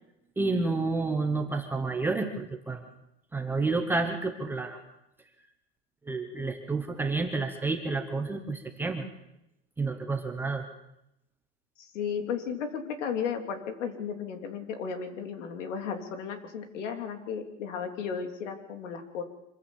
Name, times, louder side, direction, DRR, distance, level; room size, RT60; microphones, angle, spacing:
voice 1, 0.4-2.8 3.3-4.8 6.1-9.0 9.8-10.6, right 3 dB, 5° right, 4 dB, 0.9 m, -30 dB
voice 2, 11.8-19.2, left 6 dB, 70° left, 5 dB, 3.3 m, -34 dB
25.5 x 15.5 x 7.2 m, 0.85 s
supercardioid pair, 170°, 38 cm